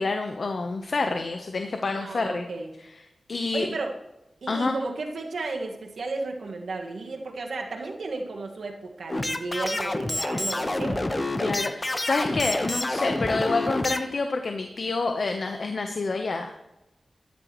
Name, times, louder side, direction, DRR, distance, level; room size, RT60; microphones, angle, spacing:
voice 1, 0.0-2.5 3.3-3.7 4.5-4.7 11.4-16.6, left 3 dB, 70° left, 5 dB, 0.9 m, -28 dB
voice 2, 2.0-2.7 3.5-3.9 4.4-11.0, right 3 dB, 85° right, 2 dB, 1.7 m, -33 dB
sound 1, 9.1-14.0, left 1 dB, 30° left, 1.1 m, -28 dB
15.0 x 10.5 x 3.1 m, 0.95 s
cardioid pair, 50°, 0 cm